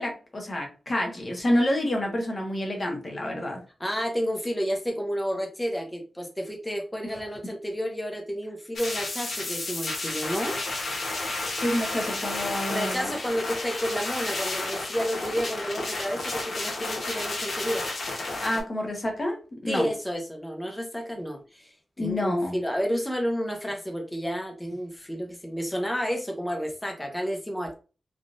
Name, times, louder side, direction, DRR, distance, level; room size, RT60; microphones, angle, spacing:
voice 1, 0.0-3.6 11.6-13.1 18.4-19.9 22.0-22.6, left 1 dB, 35° left, 1 dB, 1.0 m, -28 dB
voice 2, 3.8-10.5 12.7-17.8 19.7-27.7, equal, 5° left, 2 dB, 0.7 m, -31 dB
sound 1, 8.8-18.6, left 2 dB, 65° left, 1.0 m, -32 dB
3.6 x 2.4 x 2.5 m, 0.34 s
wide cardioid pair, 95°, 0 cm